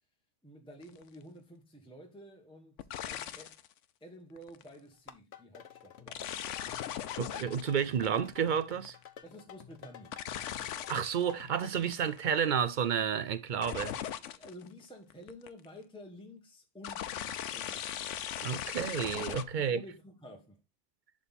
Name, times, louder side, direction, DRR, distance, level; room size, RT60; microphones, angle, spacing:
voice 1, 0.4-3.6 4.0-6.7 9.2-10.3 14.1-18.2 19.6-20.6, equal, 5° left, 1.3 m, -51 dB
sound 1, 0.8-1.0 2.8-3.7 4.4-4.7 6.1-9.0 10.1-11.2 11.6-12.2 13.6-14.7 15.1-15.6 16.8-19.4, left 10 dB, 85° left, 1.0 m, -39 dB
sound 2, 4.9-11.9, left 9 dB, 65° left, 1.1 m, -52 dB
voice 2, 7.2-9.0 10.9-14.0 18.4-19.8, right 7 dB, 55° right, 0.5 m, -31 dB
11.0 x 3.7 x 4.2 m
omnidirectional pair, 1.2 m